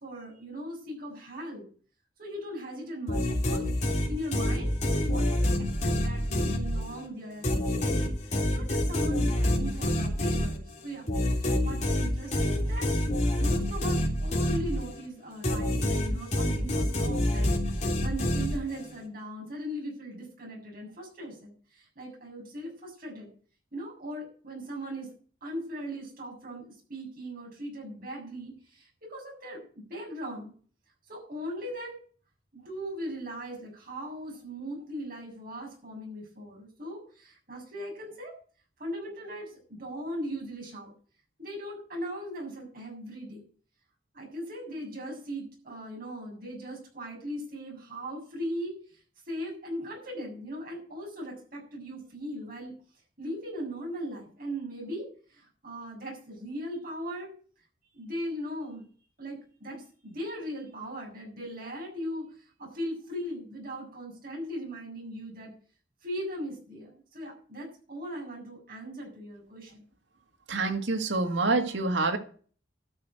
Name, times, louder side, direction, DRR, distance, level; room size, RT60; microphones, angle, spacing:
voice 1, 0.0-1.7 2.2-5.5 5.8-11.0 11.6-12.9 13.4-23.3 23.7-25.1 25.4-30.5 31.1-32.0 32.5-38.4 38.8-40.9 41.4-43.4 44.1-52.8 53.2-57.3 57.9-58.9 59.2-65.5 66.0-69.8, equal, 50° right, 7.2 m, -39 dB
sound 1, 3.1-7.1 7.4-15.1 15.4-18.9, left 1 dB, 40° left, 3.2 m, -27 dB
voice 2, 70.5-72.2, right 3 dB, 90° right, 2.0 m, -27 dB
13.0 x 6.2 x 9.2 m
head